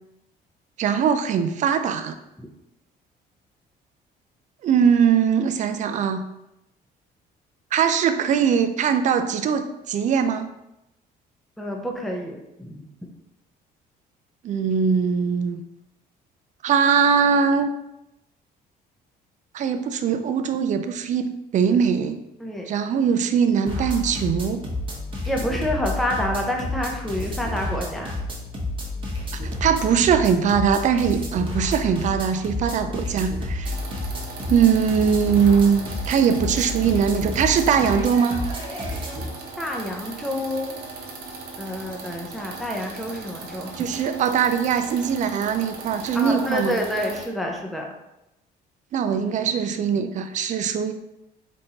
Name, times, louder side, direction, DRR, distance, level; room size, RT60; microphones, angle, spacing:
voice 1, 0.8-2.1 4.6-6.2 7.7-10.5 14.4-15.6 16.6-17.7 19.5-22.2 22.7-24.6 29.3-33.8 34.5-38.4 43.8-46.8 48.9-50.9, right 7 dB, 45° right, 9 dB, 0.4 m, -21 dB
voice 2, 11.6-12.9 22.4-22.7 25.3-28.2 39.6-40.8 41.6-43.8 46.1-47.9, left 1 dB, ahead, 0 dB, 0.6 m, -28 dB
sound 1, 23.7-39.3, left 1 dB, 30° right, 1.1 m, -30 dB
sound 2, 33.6-47.3, right 4 dB, 75° right, 0.9 m, -38 dB
4.1 x 3.5 x 2.8 m, 0.88 s
cardioid pair, 110°, 17 cm